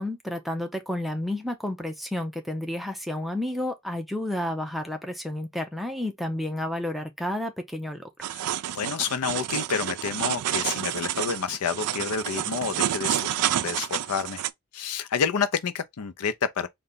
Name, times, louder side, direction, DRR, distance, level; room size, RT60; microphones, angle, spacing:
voice 1, 0.0-8.3, left 1 dB, ahead, 0.5 m, -31 dB
sound 1, 8.2-14.5, right 11 dB, 85° right, 0.3 m, -29 dB
voice 2, 8.7-14.4 14.7-16.7, left 6 dB, 85° left, 0.5 m, -29 dB
3.9 x 2.2 x 3.8 m
head